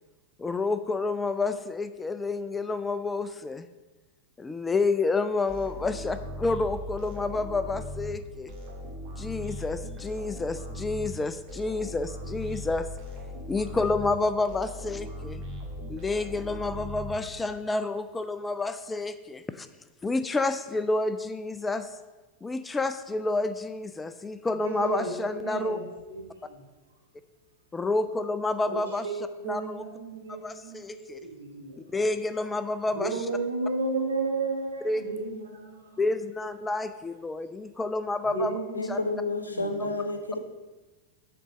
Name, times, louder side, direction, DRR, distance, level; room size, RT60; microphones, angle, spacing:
voice 1, 0.4-3.7 4.4-8.5 9.2-12.9 13.5-15.4 15.9-19.7 20.0-21.9 22.4-25.8 27.7-29.1 29.4-29.9 30.3-31.2 31.9-33.3 34.8-35.3 36.0-38.5 38.9-39.0, left 3 dB, 15° left, 11 dB, 0.3 m, -29 dB
sound 1, 5.5-17.7, equal, 30° right, 1.8 m, -39 dB
voice 2, 24.5-26.6 28.6-31.8 32.9-35.8 38.3-39.0 39.5-39.9, right 3 dB, 70° right, -1 dB, 1.7 m, -33 dB
voice 3, 38.7-40.4, left 2 dB, 80° left, 7 dB, 0.8 m, -30 dB
7.7 x 3.9 x 6.1 m, 1.2 s
figure-of-eight pair, 90°, 0 cm